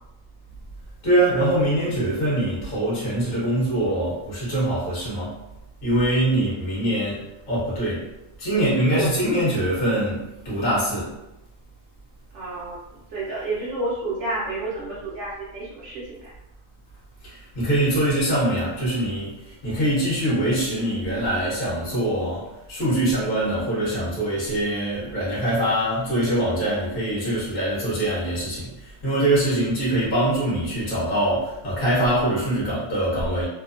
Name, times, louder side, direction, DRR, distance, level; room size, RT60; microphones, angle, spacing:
voice 1, 1.0-5.3 5.8-7.2 7.5-8.0 8.4-11.1 17.2-33.5, right 1 dB, 45° left, -8 dB, 1.1 m, -23 dB
voice 2, 8.7-9.1 12.3-12.8 13.1-16.3, right 2 dB, 65° right, -7 dB, 0.8 m, -30 dB
2.7 x 2.1 x 2.4 m, 0.96 s
omnidirectional pair, 1.5 m